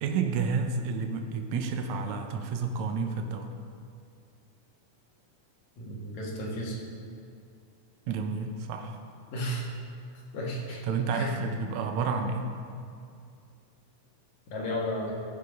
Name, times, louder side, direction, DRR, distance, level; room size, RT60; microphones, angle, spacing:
voice 1, 0.0-3.5 8.1-9.0 10.9-12.5, right 5 dB, 75° right, 5 dB, 1.7 m, -30 dB
voice 2, 5.8-6.8 9.3-9.7 10.3-10.8 11.1-11.3 12.1-12.2 12.7-12.8 14.5-15.1, equal, 55° left, -4 dB, 2.9 m, -33 dB
14.5 x 6.8 x 5.3 m, 2.4 s
omnidirectional pair, 4.1 m